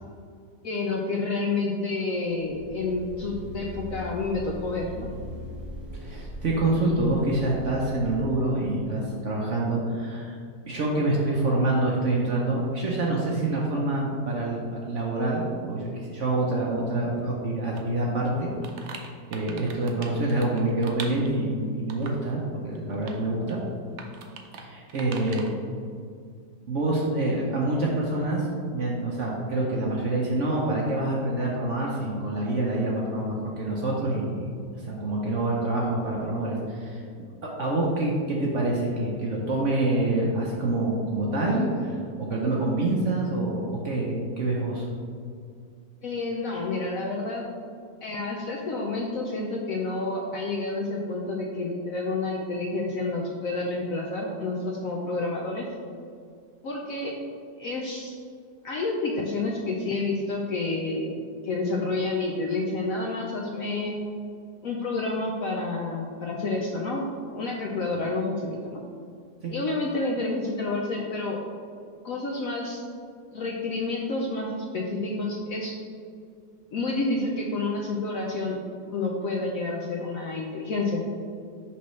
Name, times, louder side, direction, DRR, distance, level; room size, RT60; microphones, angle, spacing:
voice 1, 0.6-5.1 46.0-47.4 48.0-55.6 56.6-57.2 57.6-58.1 58.6-64.0 64.6-67.0 67.3-68.8 69.5-71.4 72.0-72.8 73.3-75.7 76.7-78.6 78.9-81.0, left 3 dB, 70° left, -1 dB, 0.8 m, -29 dB
sound 1, 2.3-8.2, left 1 dB, ahead, 0.3 m, -40 dB
voice 2, 5.9-10.4 10.7-18.5 19.3-23.6 24.5-25.5 26.7-34.5 34.7-37.0 37.6-44.8 69.4-69.5, right 2 dB, 55° right, -3 dB, 0.8 m, -26 dB
sound 2, 17.8-17.9 18.2-21.4 21.9-22.3 22.8-23.2 23.5-23.6 24.0-24.6 24.9-25.5, right 5 dB, 90° right, 0.6 m, -41 dB
5.9 x 5.5 x 3.1 m, 2.2 s
omnidirectional pair, 2.0 m